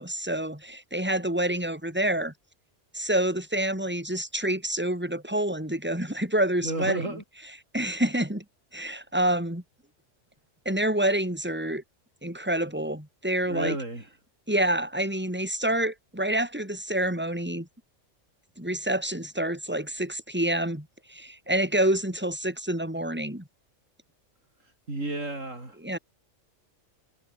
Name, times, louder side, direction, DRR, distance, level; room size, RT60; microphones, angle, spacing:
voice 1, 0.0-2.3 2.9-7.2 7.7-8.4 8.7-9.6 10.6-11.8 12.2-13.8 14.5-17.7 18.6-23.4 25.8-26.0, right 1 dB, 10° right, 4.9 m, -27 dB
voice 2, 6.6-7.2 13.5-14.1 24.9-25.8, right 2 dB, 90° right, 6.1 m, -32 dB
omnidirectional pair, 1.3 m